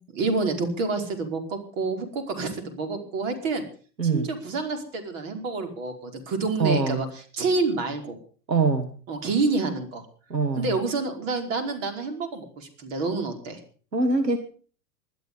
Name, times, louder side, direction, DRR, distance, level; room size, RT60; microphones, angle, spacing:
voice 1, 0.0-3.7 4.1-7.1 7.3-8.2 9.1-10.0 10.6-13.6, right 3 dB, 50° right, 5 dB, 5.2 m, -28 dB
voice 2, 4.0-4.3 6.6-7.0 8.5-8.9 10.3-10.8 13.9-14.4, right 4 dB, 85° right, 8 dB, 1.9 m, -23 dB
20.5 x 12.5 x 5.5 m, 0.42 s
figure-of-eight pair, 100°, 49 cm